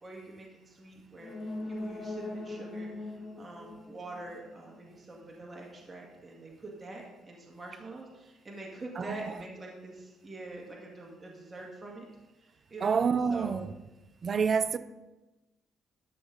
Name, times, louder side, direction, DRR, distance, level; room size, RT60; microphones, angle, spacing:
voice 1, 0.0-12.1 12.7-13.0 13.3-13.6, right 2 dB, 25° right, 1.8 m, -45 dB
sound 1, 1.1-4.8 5.2-5.3, left 2 dB, 70° left, 3.0 m, -40 dB
voice 2, 9.0-9.3 12.8-13.7 14.2-14.8, right 6 dB, 40° right, 0.5 m, -28 dB
11.5 x 6.3 x 3.9 m
cardioid pair, 110°, 0 cm